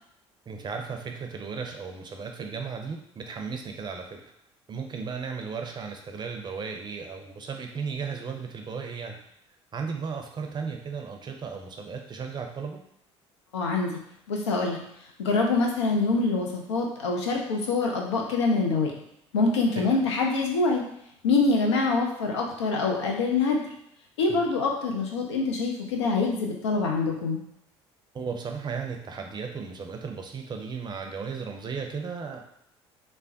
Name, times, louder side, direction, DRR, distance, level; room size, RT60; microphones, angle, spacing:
voice 1, 0.5-4.2 4.7-9.2 9.7-12.8 19.7-19.8 24.3-24.4 28.1-32.4, right 5 dB, 30° right, 3 dB, 0.5 m, -35 dB
voice 2, 13.5-14.0 14.3-14.8 15.2-18.9 19.3-20.8 21.2-23.6 24.2-27.4, left 3 dB, 80° left, 1 dB, 0.5 m, -25 dB
3.3 x 2.1 x 2.6 m, 0.75 s
figure-of-eight pair, 55°, 15 cm